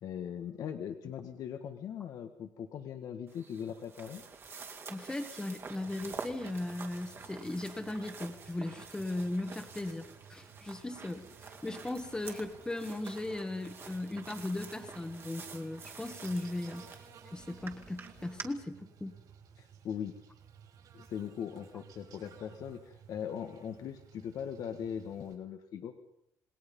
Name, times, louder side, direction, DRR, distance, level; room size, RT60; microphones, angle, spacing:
voice 1, 0.0-4.2 19.6-20.2 20.9-26.0, left 8 dB, 60° left, 6 dB, 1.8 m, -40 dB
sound 1, 3.3-18.4, right 5 dB, 35° right, 2.6 m, -48 dB
voice 2, 4.9-16.8 17.3-19.1, left 2 dB, 10° left, 5 dB, 1.7 m, -37 dB
Buzz, 5.8-25.3, right 7 dB, 60° right, 6.8 m, -56 dB
28.0 x 19.5 x 5.5 m, 0.75 s
cardioid pair, 120°, 7 cm